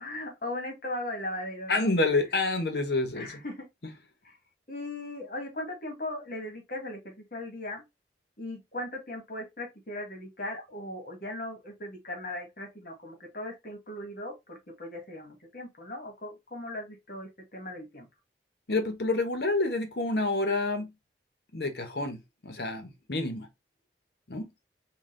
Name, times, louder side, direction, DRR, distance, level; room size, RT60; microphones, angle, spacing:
voice 1, 0.0-1.9 3.1-3.7 4.2-4.4 4.7-7.8 8.4-18.1, left 1 dB, 50° left, 1.5 m, -38 dB
voice 2, 1.7-3.3 18.7-20.9 21.5-23.5 24.3-24.5, left 2 dB, 65° left, 1.0 m, -28 dB
3.9 x 2.4 x 3.6 m
head